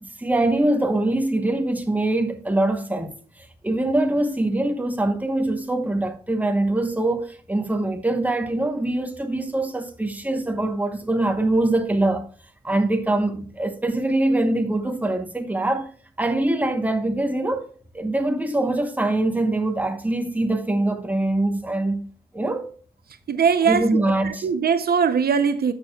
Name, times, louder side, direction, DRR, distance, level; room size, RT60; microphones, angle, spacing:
voice 1, 0.0-12.3 12.6-15.9 16.2-17.7 17.9-22.0 22.3-22.7 23.7-24.5, right 2 dB, 10° right, 1.0 m, -23 dB
voice 2, 23.3-25.7, right 6 dB, 70° right, 0.6 m, -21 dB
13.0 x 6.6 x 2.3 m
wide cardioid pair, 115°, 16 cm